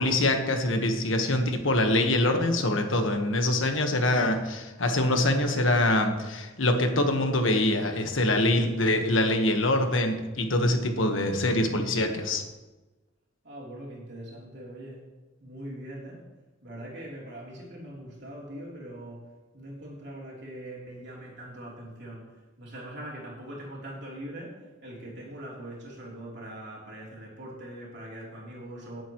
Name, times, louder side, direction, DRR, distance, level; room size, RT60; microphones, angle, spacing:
voice 1, 0.0-12.5, left 1 dB, 85° left, 5 dB, 1.4 m, -24 dB
voice 2, 13.4-15.0 15.4-16.2 16.6-19.3 19.5-29.0, right 1 dB, 60° right, -4 dB, 3.4 m, -42 dB
18.0 x 8.0 x 3.1 m, 1.2 s
head